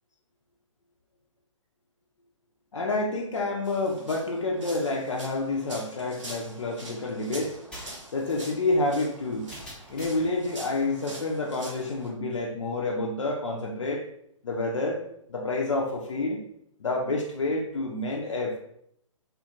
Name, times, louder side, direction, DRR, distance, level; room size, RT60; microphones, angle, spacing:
voice 1, 2.7-7.6 8.1-9.5 9.9-14.0 14.4-15.0 15.3-16.4 16.8-18.6, left 2 dB, 65° left, -1 dB, 0.6 m, -28 dB
sound 1, 3.6-12.1, right 1 dB, 65° right, 1.1 m, -44 dB
sound 2, 7.4-10.3, equal, 5° left, 0.7 m, -46 dB
3.6 x 2.4 x 2.9 m, 0.72 s
figure-of-eight pair, 125°, 17 cm